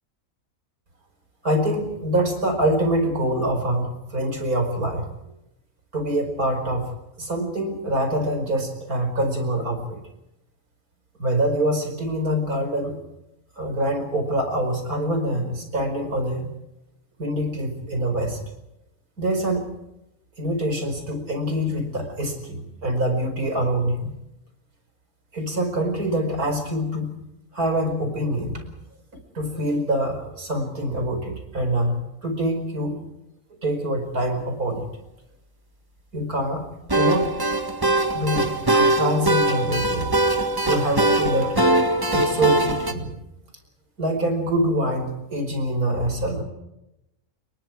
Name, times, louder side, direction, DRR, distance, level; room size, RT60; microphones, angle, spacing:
voice 1, 1.4-5.1 5.9-6.9 7.2-10.0 11.2-13.0 13.6-16.5 17.2-18.4 19.2-19.7 20.4-24.1 25.3-27.1 27.5-28.6 29.3-33.0 33.6-34.9 36.1-36.6 36.9-37.3 38.1-40.1 40.7-41.6 42.1-43.2 44.0-46.4, right 1 dB, 70° right, 6 dB, 5.5 m, -25 dB
sound 1, 36.9-42.9, right 1 dB, 15° right, 1.6 m, -21 dB
29.0 x 22.5 x 4.8 m, 0.89 s
omnidirectional pair, 1.6 m